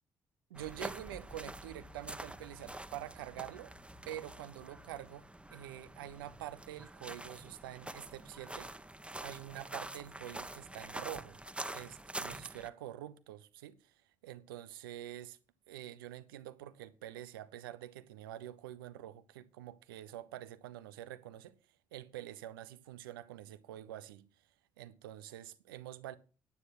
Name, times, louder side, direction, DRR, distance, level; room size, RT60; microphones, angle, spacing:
sound 1, 0.5-12.7, right 1 dB, 10° right, 1.2 m, -46 dB
voice 1, 0.5-3.7 4.1-8.7 9.2-11.4 11.7-15.4 15.7-21.5 21.9-24.3 24.8-26.2, right 13 dB, 90° right, 0.7 m, -46 dB
9.7 x 8.3 x 7.7 m
hypercardioid pair, 45°, 11 cm